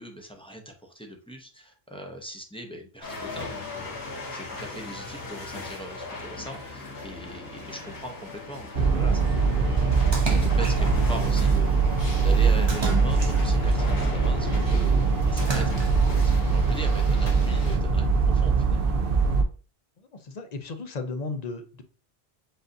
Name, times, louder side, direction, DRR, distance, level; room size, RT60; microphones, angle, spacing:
voice 1, 0.0-15.8 16.2-19.0, equal, 5° left, 1 dB, 0.6 m, -40 dB
sound 1, 3.0-17.8, left 3 dB, 90° left, 1.9 m, -39 dB
sound 2, 8.7-19.4, right 4 dB, 65° right, 0.8 m, -22 dB
Splash splatter, 10.1-11.1 12.7-13.8 15.4-16.2, right 2 dB, 30° right, 0.7 m, -32 dB
voice 2, 20.1-21.8, left 3 dB, 45° left, 7 dB, 0.7 m, -35 dB
7.7 x 2.6 x 2.6 m, 0.37 s
omnidirectional pair, 1.1 m